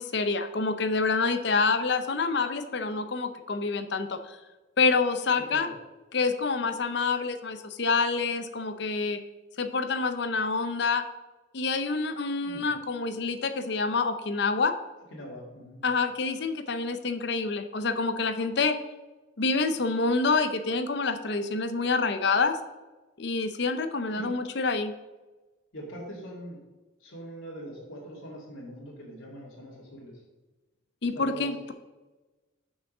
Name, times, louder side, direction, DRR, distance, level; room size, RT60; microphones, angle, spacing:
voice 1, 0.0-4.4 4.8-5.7 6.1-9.2 9.6-11.0 11.5-14.8 15.8-18.8 19.4-22.6 23.2-24.9 31.0-31.7, left 4 dB, 55° left, 9 dB, 0.6 m, -27 dB
voice 2, 5.4-5.7 12.4-12.7 15.1-15.8 24.1-24.3 25.7-26.6 27.0-30.2 31.1-31.7, equal, 90° left, -5 dB, 2.4 m, -42 dB
6.3 x 6.0 x 6.1 m, 1.2 s
head